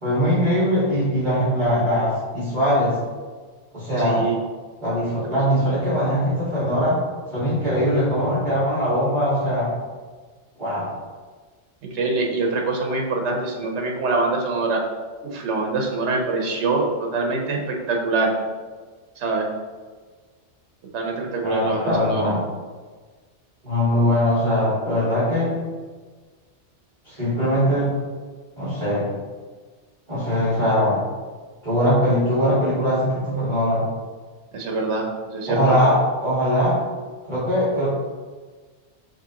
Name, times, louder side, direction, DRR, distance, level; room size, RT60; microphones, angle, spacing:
voice 1, 0.0-3.0 3.7-4.3 4.8-7.0 7.3-9.7 10.6-10.9 21.4-22.4 23.6-25.5 27.0-27.9 28.6-29.1 30.1-31.0 31.6-33.8 35.5-36.8 37.3-37.9, equal, 40° right, -11 dB, 1.7 m, -21 dB
voice 2, 4.0-4.4 5.2-5.3 11.8-14.8 15.2-18.3 19.2-19.5 20.9-22.3 34.5-35.8, right 3 dB, 75° right, 1 dB, 1.1 m, -24 dB
6.4 x 2.7 x 2.8 m, 1.4 s
omnidirectional pair, 1.2 m